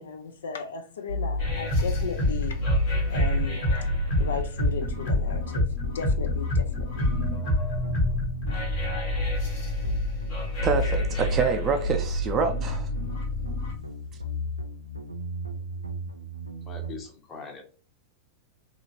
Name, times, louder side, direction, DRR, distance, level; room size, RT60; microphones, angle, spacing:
voice 1, 0.0-2.6 3.1-3.8 4.2-7.1, left 5 dB, 65° left, 0.4 m, -36 dB
sound 1, 1.1-17.0, equal, 90° right, 0.4 m, -32 dB
sound 2, 1.4-13.7, left 2 dB, 50° left, 1.3 m, -28 dB
voice 2, 10.6-12.9, right 4 dB, 30° right, 0.4 m, -26 dB
voice 3, 16.6-17.6, left 5 dB, 25° left, 0.8 m, -41 dB
2.9 x 2.4 x 2.8 m
figure-of-eight pair, 90°, 0 cm